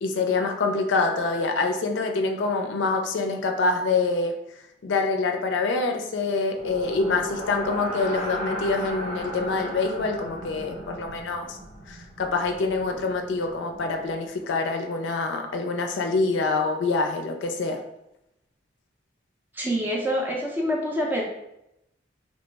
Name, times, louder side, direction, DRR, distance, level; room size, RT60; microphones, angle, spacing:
voice 1, 0.0-4.4 4.8-11.6 11.9-17.8, left 3 dB, 85° left, 4 dB, 0.4 m, -26 dB
sound 1, 6.5-14.5, equal, 55° right, 1.3 m, -36 dB
voice 2, 19.5-21.2, equal, 10° right, -2 dB, 0.5 m, -26 dB
3.1 x 2.0 x 3.3 m, 0.84 s
head